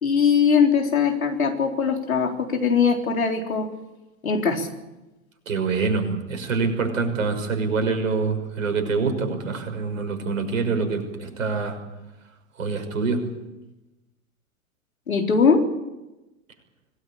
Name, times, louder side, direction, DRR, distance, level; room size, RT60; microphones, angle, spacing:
voice 1, 0.0-3.7 4.2-4.7 15.1-15.6, left 6 dB, 75° left, 3 dB, 3.9 m, -21 dB
voice 2, 5.5-11.8 12.6-13.2, right 4 dB, 65° right, 5 dB, 6.0 m, -25 dB
25.5 x 18.0 x 8.7 m, 1.0 s
figure-of-eight pair, 95°, 42 cm